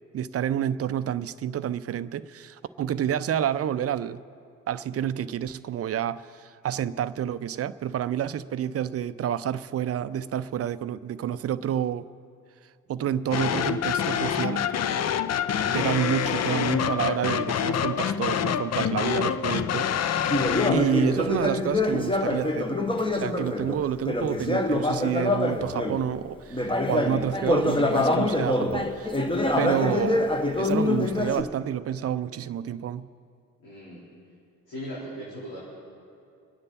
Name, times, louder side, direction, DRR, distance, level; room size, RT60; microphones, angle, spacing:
voice 1, 0.1-4.2 4.7-12.1 12.9-14.6 15.7-20.2 20.7-22.7 23.1-29.1 29.6-30.3 30.5-33.1, right 9 dB, 40° right, 15 dB, 0.5 m, -29 dB
sound 1, 13.3-20.9, left 8 dB, 40° left, 0.6 m, -26 dB
Conversation, 20.3-26.0 26.5-31.4, left 2 dB, 15° left, 1.3 m, -25 dB
voice 2, 33.6-34.0 34.7-35.6, equal, 65° left, -10 dB, 4.7 m, -38 dB
27.5 x 9.8 x 4.2 m, 2.5 s
figure-of-eight pair, 45°, 40 cm